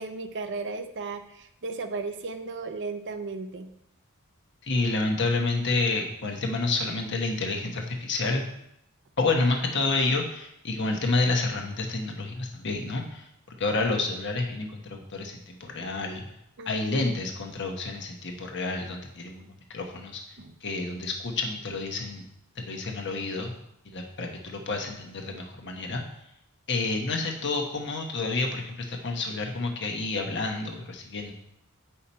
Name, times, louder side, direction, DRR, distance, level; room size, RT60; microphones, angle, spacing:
voice 1, 0.0-3.7 16.6-17.0 20.4-20.5, right 3 dB, 55° right, 8 dB, 0.6 m, -35 dB
voice 2, 4.6-8.4 9.2-13.3 13.6-16.2 16.6-20.2 20.6-22.2 22.6-23.5 23.8-26.0 26.7-31.3, left 3 dB, 55° left, 2 dB, 1.2 m, -29 dB
8.6 x 5.7 x 4.3 m, 0.77 s
head